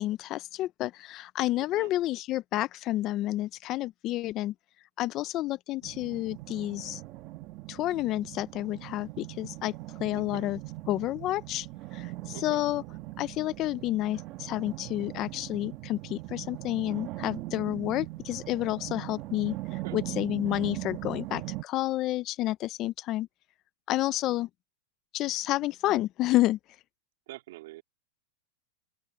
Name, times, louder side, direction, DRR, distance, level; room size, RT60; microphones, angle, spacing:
voice 1, 0.0-4.5 5.0-7.0 7.7-9.7 10.0-10.6 10.9-11.7 11.9-12.8 13.2-19.6 19.9-23.3 23.9-24.5 25.1-26.6, left 15 dB, 30° left, 0.3 m, -30 dB
voice 2, 1.6-1.9 10.1-10.5 12.3-12.7 19.8-20.0 27.3-27.8, right 17 dB, 60° right, 2.7 m, -46 dB
sound 1, 5.8-21.6, right 18 dB, 35° right, 1.2 m, -40 dB
open air
supercardioid pair, 165°, 0 cm